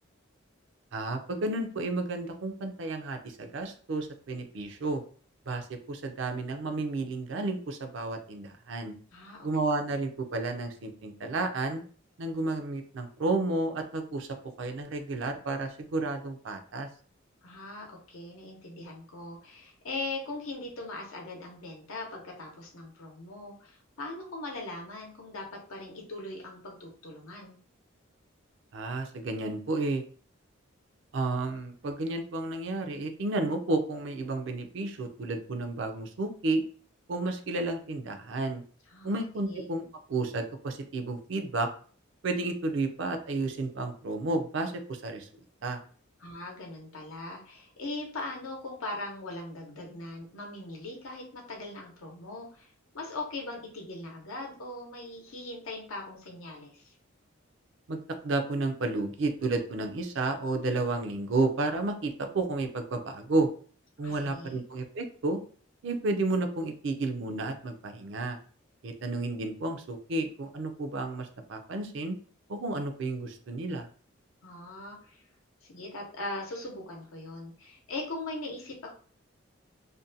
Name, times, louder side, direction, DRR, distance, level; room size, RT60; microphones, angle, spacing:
voice 1, 0.9-5.0 5.5-8.9 9.4-11.8 12.2-14.3 14.6-16.9 28.7-30.0 31.1-36.6 37.1-38.6 39.0-41.7 42.2-45.3 45.6-45.8 57.9-63.5 64.0-65.4 65.8-68.4 68.8-72.2 72.5-73.9, right 2 dB, 65° right, 6 dB, 0.4 m, -31 dB
voice 2, 9.1-9.5 9.9-10.0 17.4-25.4 25.7-27.6 38.9-39.6 46.2-56.9 64.0-64.6 74.4-75.2 75.6-78.9, left 2 dB, 90° left, 0 dB, 0.7 m, -40 dB
2.6 x 2.1 x 2.6 m, 0.43 s
head